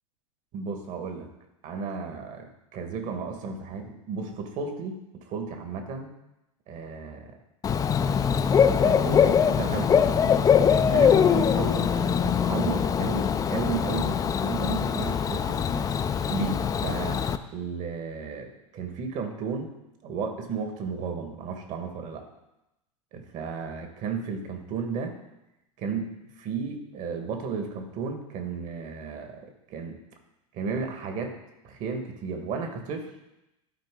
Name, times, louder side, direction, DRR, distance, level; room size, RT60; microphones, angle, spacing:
voice 1, 0.5-1.3 1.6-6.1 6.7-7.3 8.7-10.5 10.9-11.9 12.2-15.8 16.3-17.2 17.5-19.7 20.0-22.3 23.1-25.2 25.8-30.0 30.5-31.3 31.6-33.1, right 5 dB, 45° right, 5 dB, 1.5 m, -34 dB
Bird / Cricket, 7.6-17.4, left 7 dB, 20° left, 0.4 m, -23 dB
12.0 x 4.5 x 3.7 m, 0.91 s
hypercardioid pair, 90°, 17 cm